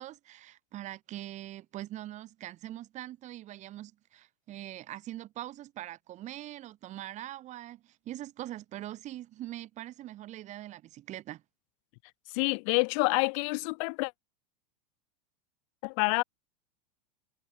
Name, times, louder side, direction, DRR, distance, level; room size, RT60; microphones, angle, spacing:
voice 1, 0.0-11.4, right 14 dB, 35° right, 3.0 m, -42 dB
voice 2, 12.3-14.1 15.8-16.2, left 33 dB, 55° left, 1.1 m, -27 dB
supercardioid pair, 130°, 20 cm